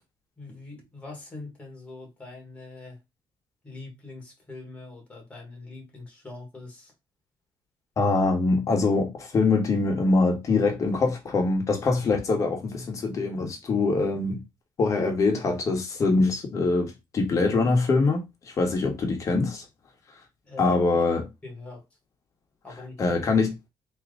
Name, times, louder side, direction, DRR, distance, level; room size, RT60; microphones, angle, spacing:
voice 1, 0.4-3.0 3.6-6.9 20.4-20.8 21.4-21.8 22.6-23.0, left 3 dB, 15° left, 1.3 m, -42 dB
voice 2, 8.0-14.4 14.8-19.7 20.1-20.2 20.6-21.3 23.0-23.6, left 3 dB, 35° left, 1.1 m, -24 dB
3.5 x 2.8 x 3.7 m
cardioid pair, 170°, 9 cm